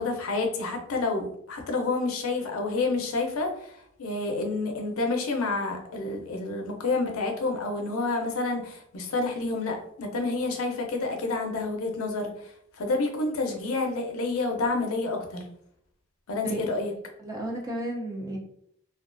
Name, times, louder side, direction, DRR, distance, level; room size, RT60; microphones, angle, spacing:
voice 1, 0.0-3.5 4.0-15.4 16.3-16.9, left 3 dB, 80° left, 3 dB, 0.5 m, -29 dB
voice 2, 17.2-18.4, right 1 dB, 15° right, -1 dB, 0.4 m, -33 dB
2.4 x 2.2 x 2.4 m, 0.69 s
head